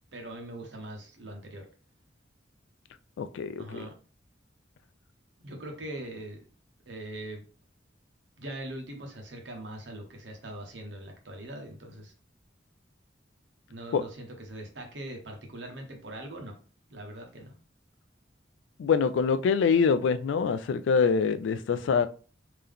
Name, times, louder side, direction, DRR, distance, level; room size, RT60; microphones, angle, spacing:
voice 1, 0.1-1.6 3.6-3.9 5.4-6.4 6.9-7.4 8.4-12.1 13.7-16.5 16.9-17.5, right 1 dB, 75° right, 1.0 m, -41 dB
voice 2, 3.2-3.9 13.9-14.0 18.8-22.1, left 5 dB, 80° left, 0.3 m, -25 dB
3.7 x 2.8 x 3.4 m
head